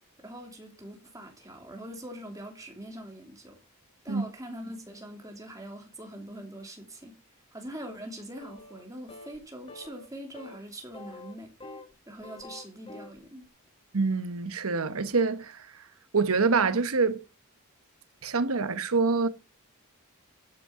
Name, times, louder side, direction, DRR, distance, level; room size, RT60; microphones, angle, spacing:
voice 1, 0.2-3.6 4.0-7.1 7.5-11.5 12.1-13.5, right 1 dB, 15° right, 2.8 m, -43 dB
sound 1, 8.4-8.8 9.1-9.4 9.7-10.1 10.3-10.6 10.9-11.9 12.2-13.2, left 2 dB, 25° left, 1.6 m, -46 dB
voice 2, 13.9-15.6 16.1-17.2 18.2-19.3, right 4 dB, 70° right, 1.0 m, -25 dB
12.5 x 5.5 x 5.7 m
head